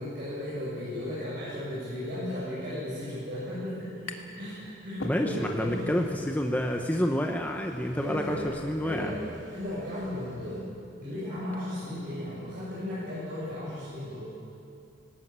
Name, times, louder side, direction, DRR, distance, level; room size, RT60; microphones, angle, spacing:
voice 1, 0.0-6.0 8.0-8.5 8.8-10.7 11.0-14.3, left 1 dB, 45° right, -11 dB, 7.8 m, -35 dB
sound 1, 4.1-4.5 4.8-5.7, left 3 dB, 80° left, 1.9 m, -42 dB
voice 2, 5.0-9.1, equal, 10° left, 3 dB, 0.9 m, -29 dB
sound 2, 5.1-10.6, equal, 65° right, 6.4 m, -52 dB
20.0 x 17.5 x 8.9 m, 2.5 s
head